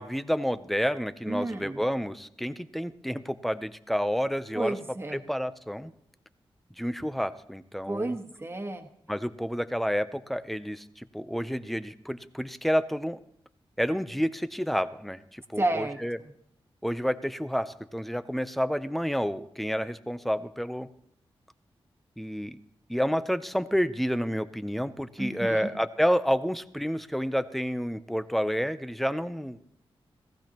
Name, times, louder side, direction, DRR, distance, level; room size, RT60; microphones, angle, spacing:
voice 1, 0.0-4.8 5.1-5.9 6.8-8.1 9.1-13.2 13.8-16.2 16.8-20.9 22.2-22.6 22.9-29.6, equal, ahead, 12 dB, 0.7 m, -29 dB
voice 2, 1.3-1.8 4.5-5.2 7.8-8.9 15.6-16.0 25.2-25.7, right 2 dB, 25° right, 5 dB, 1.5 m, -31 dB
18.5 x 15.0 x 3.0 m, 0.74 s
wide cardioid pair, 80°, 10 cm